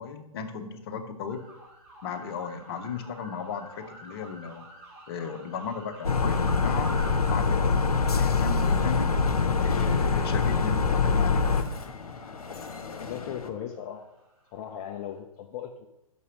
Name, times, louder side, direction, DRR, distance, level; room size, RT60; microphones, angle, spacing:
voice 1, 0.0-1.4 2.0-4.7 5.1-6.9 7.3-7.8 8.1-9.2 9.6-11.6, left 6 dB, 40° left, 6 dB, 1.0 m, -35 dB
sound 1, 1.3-15.2, right 1 dB, 40° right, 2.5 m, -50 dB
sound 2, 6.0-11.6, left 4 dB, 85° left, 0.7 m, -24 dB
sound 3, 7.9-13.5, left 5 dB, 70° left, 1.1 m, -41 dB
voice 2, 13.0-14.1 14.5-15.9, left 9 dB, 25° left, 2 dB, 0.5 m, -37 dB
6.1 x 5.5 x 6.5 m, 0.94 s
figure-of-eight pair, 125°, 19 cm